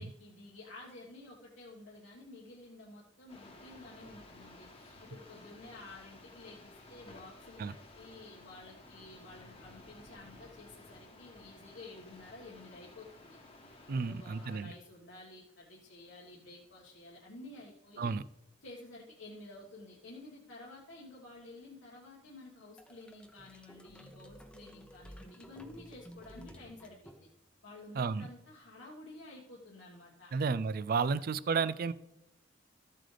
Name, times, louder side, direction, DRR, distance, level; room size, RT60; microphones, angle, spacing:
voice 1, 0.0-13.4 13.9-18.2 18.6-27.3 27.6-30.3, left 2 dB, 85° left, -5 dB, 1.7 m, -52 dB
sound 1, 3.3-14.6, left 2 dB, 30° left, 1.2 m, -55 dB
voice 2, 13.9-14.7 18.0-18.2 27.9-28.3 30.3-31.9, right 5 dB, 50° right, 17 dB, 0.4 m, -32 dB
sound 2, 22.8-27.6, equal, 5° left, 0.8 m, -54 dB
14.0 x 7.5 x 3.4 m, 0.89 s
head